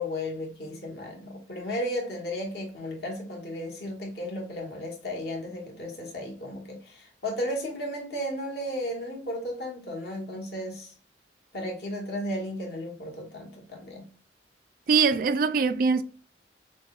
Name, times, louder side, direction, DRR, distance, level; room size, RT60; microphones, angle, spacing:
voice 1, 0.0-10.9 11.5-14.1, left 1 dB, 60° left, 1.2 m, -34 dB
voice 2, 14.9-16.0, right 5 dB, 50° right, 0.3 m, -22 dB
5.9 x 2.1 x 2.4 m
head